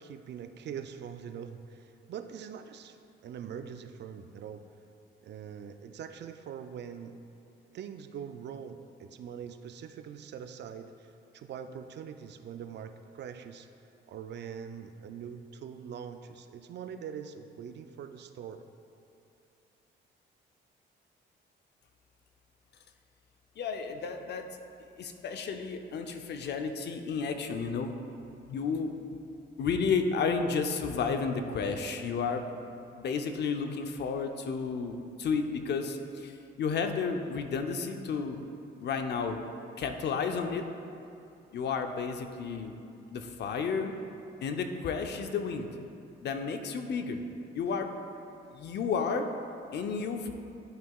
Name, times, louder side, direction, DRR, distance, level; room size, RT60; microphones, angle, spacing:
voice 1, 0.0-3.0 3.2-4.6 5.2-7.2 7.7-13.7 14.1-18.7, right 8 dB, 60° right, 9 dB, 0.4 m, -43 dB
voice 2, 23.6-24.5 25.0-27.9 28.5-28.9 29.6-32.4 33.0-38.4 38.8-39.4 39.8-40.6 41.5-42.7 43.1-43.9 44.4-45.7 46.2-47.2 47.5-47.9 48.5-49.3 49.7-50.3, left 5 dB, 60° left, 6 dB, 0.6 m, -32 dB
11.0 x 5.6 x 2.4 m, 2.7 s
cardioid pair, 90°, 20 cm